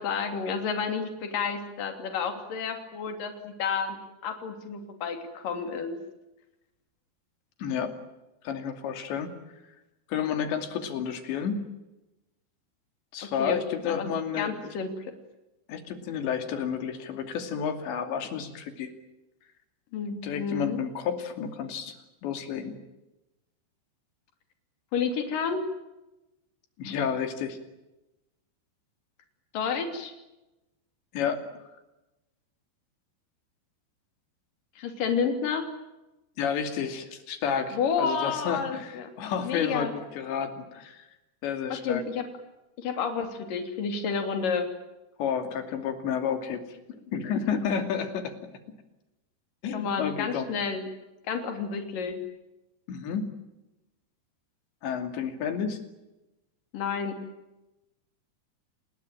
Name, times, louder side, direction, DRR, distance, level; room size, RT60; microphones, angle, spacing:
voice 1, 0.0-4.0 4.2-6.0 13.2-14.1 14.4-15.1 19.9-20.8 24.9-25.7 29.5-30.1 34.8-35.7 37.7-39.9 41.7-42.3 42.8-44.7 49.7-50.9 51.3-52.2 56.7-57.2, left 6 dB, 55° left, 6 dB, 4.4 m, -30 dB
voice 2, 7.6-7.9 8.4-9.3 10.1-11.7 13.1-14.6 15.7-18.9 20.2-22.8 26.8-27.6 31.1-31.4 36.4-41.1 41.4-42.0 45.2-48.5 49.6-50.5 52.9-53.3 54.8-55.8, left 7 dB, 90° left, 7 dB, 5.0 m, -31 dB
29.5 x 20.5 x 9.1 m, 0.99 s
omnidirectional pair, 4.9 m